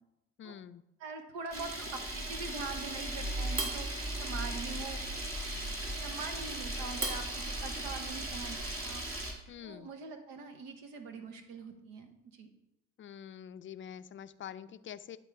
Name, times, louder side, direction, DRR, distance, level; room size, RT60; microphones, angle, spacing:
voice 1, 0.4-0.8 9.5-9.9 13.0-15.2, left 9 dB, 35° left, 13 dB, 0.4 m, -46 dB
voice 2, 1.0-3.9 4.2-5.0 6.0-9.0 9.6-12.5, right 4 dB, 75° right, 7 dB, 1.0 m, -43 dB
Camera, 1.5-9.3, right 1 dB, 40° right, 1.9 m, -37 dB
9.7 x 3.7 x 4.5 m, 0.87 s
hypercardioid pair, 55°, 35 cm